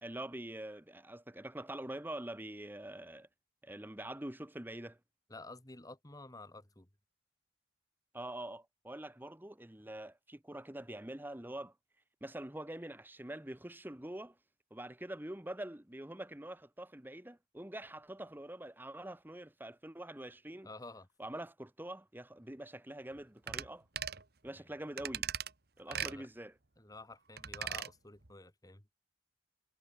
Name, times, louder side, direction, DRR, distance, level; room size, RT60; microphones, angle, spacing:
voice 1, 0.0-3.3 3.6-5.0 8.1-11.7 12.2-14.4 14.7-20.7 21.2-23.9 24.4-25.3 25.8-26.5, right 1 dB, 10° right, 1.1 m, -45 dB
voice 2, 5.3-6.9 20.6-21.1 25.9-26.3 26.8-28.8, left 2 dB, 20° left, 2.1 m, -51 dB
sound 1, 23.5-23.7 24.0-24.2 25.0-25.5 25.9-26.2 27.4-27.9 28.2-28.3, right 9 dB, 55° right, 1.9 m, -38 dB
head